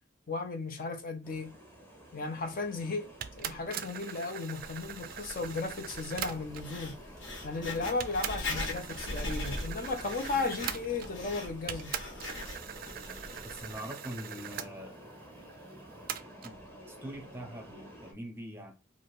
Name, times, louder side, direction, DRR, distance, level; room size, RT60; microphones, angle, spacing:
voice 1, 0.3-1.5 2.1-3.1 3.4-7.0 7.4-11.9, left 3 dB, 45° left, 0.5 m, -35 dB
sound 1, 1.2-18.1, equal, 10° left, 0.9 m, -51 dB
sound 2, 3.2-6.8 7.5-7.6 8.0-11.3 11.7-14.7 16.1-16.6, right 9 dB, 50° right, 0.3 m, -41 dB
Writing, 4.5-13.8, left 2 dB, 65° left, 1.1 m, -41 dB
voice 2, 13.4-15.0 16.4-18.7, equal, 10° right, 0.7 m, -43 dB
2.8 x 2.5 x 3.1 m
head